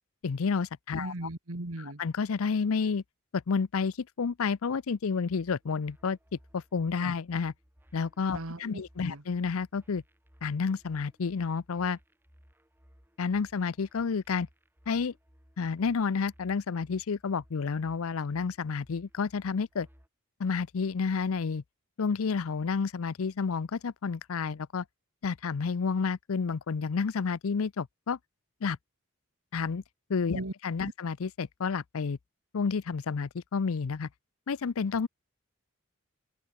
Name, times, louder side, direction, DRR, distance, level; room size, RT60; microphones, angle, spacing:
voice 1, 0.2-1.1 2.0-3.0 3.3-7.5 7.9-10.0 10.4-12.0 13.2-14.5 14.9-15.1 15.6-19.9 20.4-21.6 22.0-24.8 25.2-28.2 28.6-28.8 29.5-29.8 30.1-32.2 32.5-34.1 34.5-35.1, left 5 dB, 75° left, 0.5 m, -30 dB
voice 2, 1.0-2.0 7.0-7.1 8.3-9.2 30.3-30.5, right 1 dB, 80° right, 1.9 m, -38 dB
sound 1, 5.3-20.1, equal, 10° right, 7.1 m, -61 dB
open air
head